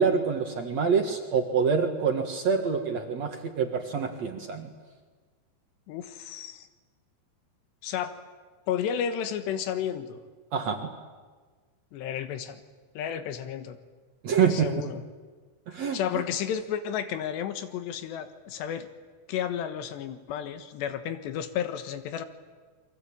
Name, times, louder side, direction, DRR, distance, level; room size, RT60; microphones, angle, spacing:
voice 1, 0.0-4.7 10.5-10.9 14.2-14.7 15.7-16.2, right 6 dB, 50° right, 4 dB, 2.3 m, -26 dB
voice 2, 5.9-6.7 7.8-8.2 8.7-10.2 11.9-12.6 13.0-13.8 14.5-15.0 15.7-18.9 19.3-22.3, left 9 dB, 85° left, 9 dB, 3.5 m, -32 dB
29.0 x 23.5 x 8.7 m, 1.4 s
omnidirectional pair, 4.9 m